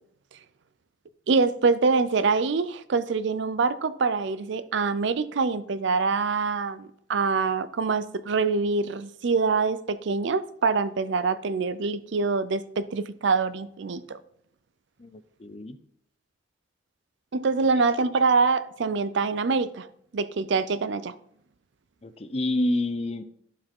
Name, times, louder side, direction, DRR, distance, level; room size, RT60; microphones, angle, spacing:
voice 1, 1.3-14.2 17.3-19.9 20.1-21.1, right 4 dB, 60° right, 0.5 m, -25 dB
voice 2, 15.0-15.8 22.0-23.2, left 1 dB, 30° left, 0.5 m, -28 dB
11.5 x 4.8 x 3.7 m
head